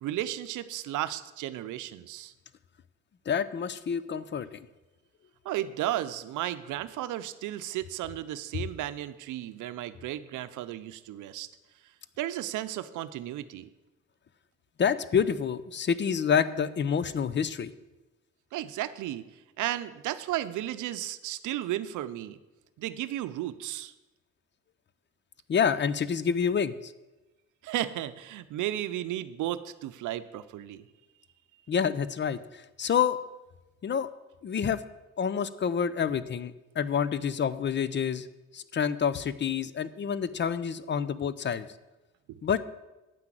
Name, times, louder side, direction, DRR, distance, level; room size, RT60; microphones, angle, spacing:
voice 1, 0.0-2.3 5.4-11.5 12.2-13.7 18.5-22.4 22.8-23.9 27.6-30.8 42.3-42.4, right 13 dB, 85° right, 13 dB, 0.6 m, -34 dB
voice 2, 3.3-4.6 8.5-8.6 14.8-17.7 25.5-26.9 31.7-33.2 33.8-34.1 34.4-34.8 35.2-38.3 38.5-41.7 42.4-42.6, left 7 dB, 40° left, 15 dB, 0.6 m, -28 dB
9.1 x 5.9 x 7.5 m, 1.1 s
cardioid pair, 90°, 30 cm